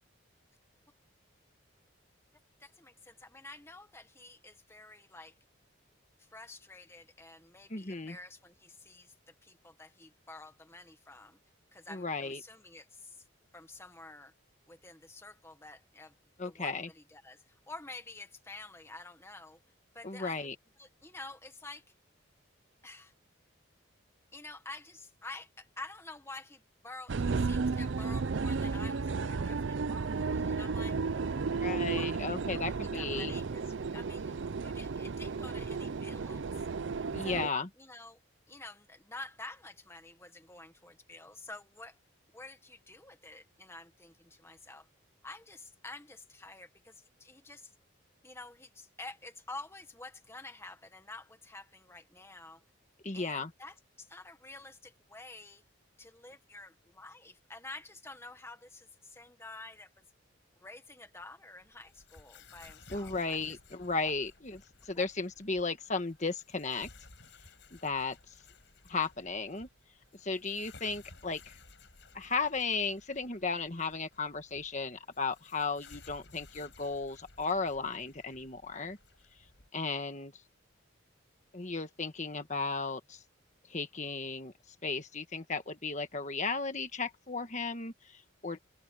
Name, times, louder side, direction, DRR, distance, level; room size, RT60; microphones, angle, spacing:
voice 1, 2.6-5.3 6.2-11.4 11.7-13.2 13.5-14.3 14.7-16.1 16.4-19.6 19.9-20.5 20.8-21.8 22.8-23.1 24.3-31.0 31.6-36.6 37.2-38.2 38.5-42.0 42.3-44.9 45.2-47.7 48.2-52.6 53.1-55.6 56.0-60.0 60.6-63.4 64.9-65.1, left 2 dB, 10° left, 1.5 m, -49 dB
voice 2, 7.7-8.2 11.9-12.4 16.4-16.9 20.0-20.5 31.6-33.3 37.1-37.7 53.0-53.5 62.9-66.9 67.7-68.3 68.9-69.7 70.2-71.6 72.1-79.0 79.7-80.3 81.5-83.2 83.7-84.5 84.8-88.6, left 4 dB, 35° left, 1.4 m, -35 dB
sound 1, 27.1-37.5, right 4 dB, 65° right, 0.5 m, -33 dB
sound 2, 61.6-79.7, left 3 dB, 60° left, 5.6 m, -57 dB
head